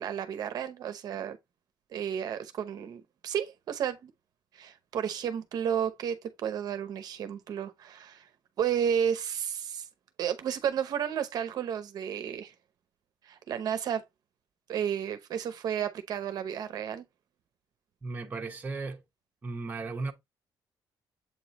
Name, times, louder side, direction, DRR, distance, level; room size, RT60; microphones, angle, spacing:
voice 1, 0.0-1.4 1.9-4.1 4.5-8.3 8.6-9.9 10.2-12.5 13.2-14.0 14.7-17.0, right 8 dB, 55° right, 0.8 m, -32 dB
voice 2, 18.0-19.0 19.4-20.1, right 3 dB, 20° right, 0.9 m, -35 dB
7.7 x 3.1 x 4.0 m
cardioid pair, 155°, 8 cm